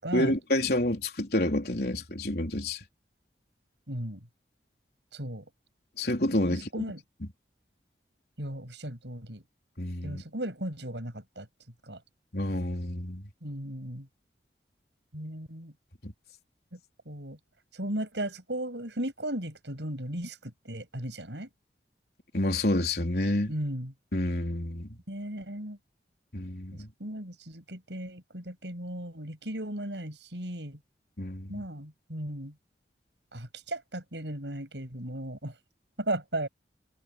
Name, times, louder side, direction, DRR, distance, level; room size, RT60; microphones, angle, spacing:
voice 1, 0.1-2.8 6.0-6.8 9.8-10.2 12.3-13.2 16.0-16.1 22.3-23.5 24.1-24.9 26.3-26.9 31.2-31.6, left 1 dB, 60° left, 3.9 m, -29 dB
voice 2, 3.9-4.2 5.1-5.4 6.5-7.0 8.4-9.4 10.0-11.5 11.9-12.0 13.4-14.1 15.1-15.7 16.7-16.8 17.1-17.4 17.7-21.5 23.5-23.9 25.1-25.8 26.7-30.8 31.5-32.5 33.3-35.5 36.0-36.5, right 1 dB, 80° right, 7.4 m, -36 dB
head